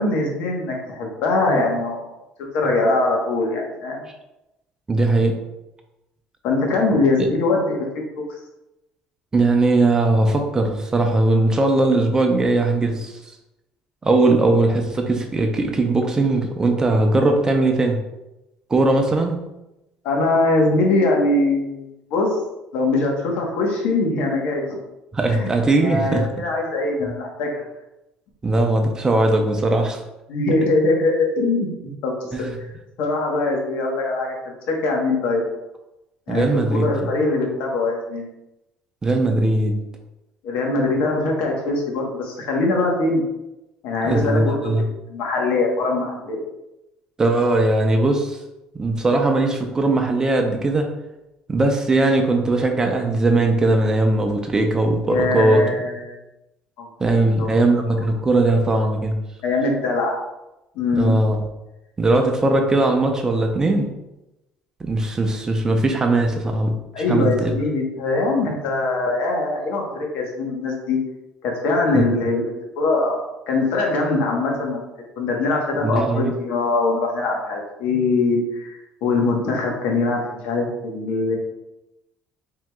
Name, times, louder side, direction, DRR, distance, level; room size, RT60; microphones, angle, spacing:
voice 1, 0.0-2.1 2.4-4.1 6.4-8.0 20.0-22.3 22.7-24.8 25.3-25.5 25.8-27.6 30.3-32.5 33.0-35.4 36.3-36.4 36.7-38.3 40.4-43.2 43.8-44.7 45.1-46.4 55.1-56.2 56.8-57.5 57.9-58.1 59.4-60.2 60.7-61.2 66.9-71.0 71.4-74.8 75.2-81.3, left 2 dB, 75° left, 0 dB, 1.1 m, -22 dB
voice 2, 4.9-5.4 9.3-13.1 14.0-18.0 18.7-19.4 25.1-26.3 28.4-30.0 32.3-32.6 36.3-37.1 39.0-39.7 44.0-44.9 47.2-48.4 48.8-50.9 51.5-55.6 57.0-59.2 60.9-61.4 62.0-63.9 64.9-66.8 67.1-67.5 71.9-72.2 75.8-76.3, right 2 dB, 20° right, 4 dB, 0.6 m, -19 dB
4.5 x 3.6 x 2.3 m, 0.93 s
cardioid pair, 105°, 3 cm